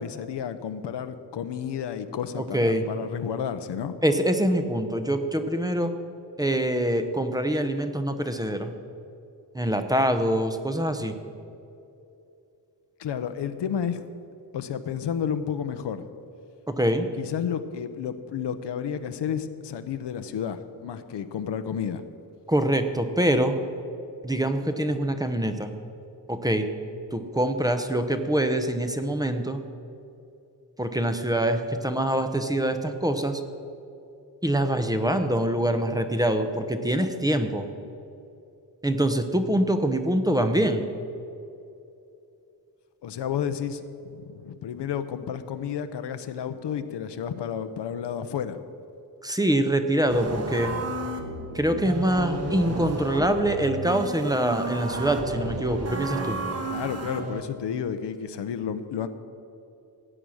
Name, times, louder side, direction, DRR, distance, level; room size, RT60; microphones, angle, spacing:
voice 1, 0.0-3.9 13.0-14.0 14.5-16.1 17.2-22.0 43.0-48.6 56.7-59.1, left 8 dB, 85° left, 10 dB, 0.9 m, -31 dB
voice 2, 2.4-2.8 4.0-5.9 6.4-8.7 9.5-11.1 16.7-17.1 22.5-23.6 24.2-25.7 26.3-26.7 27.1-29.6 30.8-33.4 34.4-37.7 38.8-40.8 49.2-50.7 51.5-56.4, right 1 dB, 10° right, 7 dB, 0.7 m, -24 dB
sound 1, 50.1-57.4, right 2 dB, 35° right, 1.4 m, -32 dB
16.0 x 8.8 x 6.4 m, 2.7 s
wide cardioid pair, 155°, 41 cm